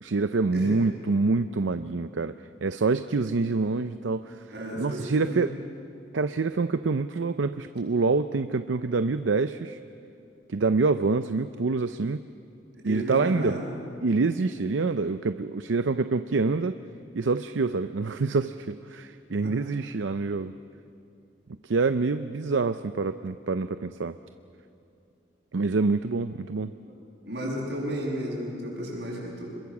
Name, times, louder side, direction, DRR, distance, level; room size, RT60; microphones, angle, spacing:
voice 1, 0.0-5.5 6.1-9.8 10.5-12.2 12.9-13.6 14.0-16.8 17.1-20.5 21.6-24.2 25.5-26.7, right 3 dB, 85° right, 11 dB, 0.6 m, -26 dB
voice 2, 4.5-5.5 12.7-13.7 19.4-19.5 26.9-27.0 27.2-29.5, equal, 65° right, -3 dB, 7.0 m, -33 dB
26.5 x 22.5 x 7.2 m, 2.6 s
head